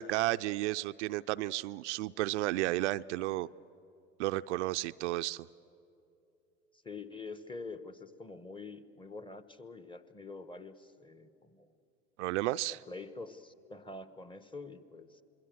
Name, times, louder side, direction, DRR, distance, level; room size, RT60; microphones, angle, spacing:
voice 1, 0.0-3.5 4.2-5.5 12.2-12.8, right 17 dB, 65° right, 12 dB, 0.5 m, -32 dB
voice 2, 6.8-11.7 12.7-15.2, left 3 dB, 15° left, 12 dB, 1.2 m, -46 dB
27.5 x 21.5 x 7.8 m, 2.8 s
hypercardioid pair, 75°, 37 cm